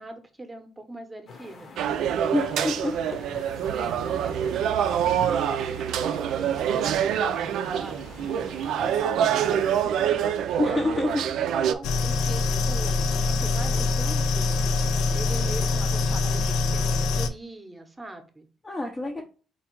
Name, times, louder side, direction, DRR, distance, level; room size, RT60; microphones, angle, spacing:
voice 1, 0.0-1.7 2.9-8.0 10.5-10.6 11.0-14.7 15.1-18.5, right 2 dB, 10° right, 5 dB, 0.8 m, -42 dB
sound 1, 1.3-9.8, left 4 dB, 50° left, 0.9 m, -46 dB
sound 2, 1.8-11.7, right 9 dB, 75° right, 0.4 m, -26 dB
voice 2, 2.3-3.1 10.6-11.2 18.6-19.2, left 2 dB, 20° left, 0 dB, 0.6 m, -27 dB
sound 3, 11.8-17.3, left 3 dB, 90° left, 0.5 m, -24 dB
4.3 x 2.3 x 4.4 m, 0.37 s
cardioid pair, 130°, 0 cm